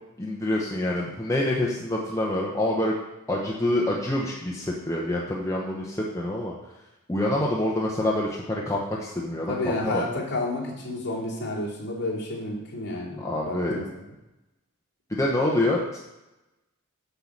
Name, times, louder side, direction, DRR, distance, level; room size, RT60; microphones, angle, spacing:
voice 1, 0.2-2.9 3.3-6.5 7.1-10.0 13.2-13.8 15.1-16.0, left 1 dB, 15° left, -3 dB, 0.9 m, -26 dB
voice 2, 9.5-14.1, left 2 dB, 50° left, -5 dB, 2.9 m, -31 dB
8.0 x 4.8 x 7.2 m, 0.98 s
head